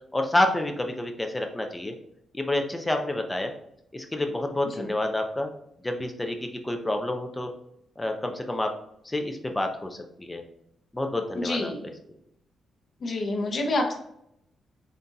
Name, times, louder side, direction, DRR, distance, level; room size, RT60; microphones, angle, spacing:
voice 1, 0.1-1.9 2.3-3.5 3.9-5.5 5.8-6.4 6.6-7.5 8.0-8.7 9.1-9.9 10.2-10.4 10.9-11.7, left 1 dB, 10° left, 4 dB, 0.5 m, -28 dB
voice 2, 11.3-11.8 13.0-13.9, left 2 dB, 45° left, 1 dB, 0.9 m, -28 dB
3.9 x 3.4 x 2.7 m, 0.75 s
cardioid pair, 135°, 0 cm